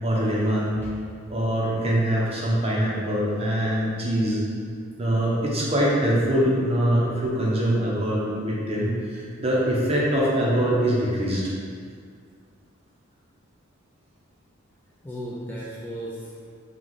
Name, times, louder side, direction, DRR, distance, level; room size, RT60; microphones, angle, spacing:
voice 1, 0.0-0.8 1.3-4.4 5.0-11.4, right 1 dB, 30° right, -5 dB, 0.8 m, -23 dB
voice 2, 0.8-1.2 15.0-16.5, equal, 10° left, -6 dB, 0.4 m, -36 dB
4.7 x 2.4 x 3.9 m, 2.1 s
head